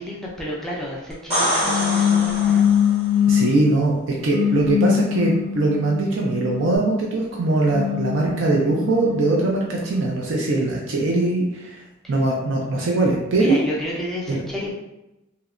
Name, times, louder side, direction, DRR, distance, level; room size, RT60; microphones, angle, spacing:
voice 1, 0.0-2.7 12.0-12.1 13.4-14.7, equal, ahead, -5 dB, 0.3 m, -31 dB
sound 1, 1.1-3.0 6.8-6.9, equal, 30° right, 1.0 m, -25 dB
sound 2, 1.6-3.6 4.2-6.9 7.5-9.8, left 9 dB, 70° left, 0.4 m, -23 dB
voice 2, 3.3-11.8 12.1-13.6 14.3-14.4, right 2 dB, 65° right, -1 dB, 0.4 m, -21 dB
2.8 x 2.1 x 2.4 m, 0.92 s
head